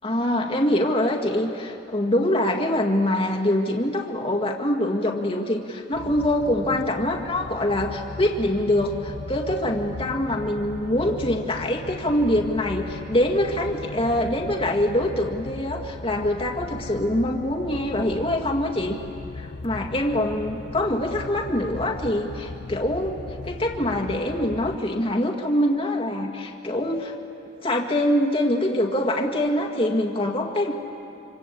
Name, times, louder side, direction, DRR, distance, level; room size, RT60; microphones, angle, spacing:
voice 1, 0.0-19.0 19.4-27.1 27.6-30.7, left 1 dB, 30° left, 0 dB, 2.0 m, -24 dB
sound 1, 5.9-24.8, left 2 dB, 75° left, 0.7 m, -37 dB
26.5 x 26.0 x 8.5 m, 2.7 s
head